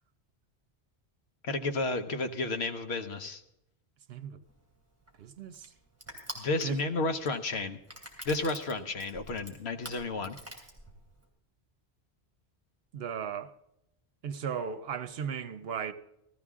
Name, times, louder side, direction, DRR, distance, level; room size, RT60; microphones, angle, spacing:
voice 1, 1.5-3.4 6.4-7.8 8.2-10.4, left 3 dB, 70° left, 1.2 m, -32 dB
voice 2, 4.1-4.4 5.2-5.7 6.6-6.8 12.9-13.5 14.2-15.9, right 7 dB, 65° right, 0.9 m, -36 dB
Crushing, 4.5-11.3, right 1 dB, 15° right, 2.9 m, -47 dB
15.5 x 14.0 x 3.6 m
omnidirectional pair, 1.1 m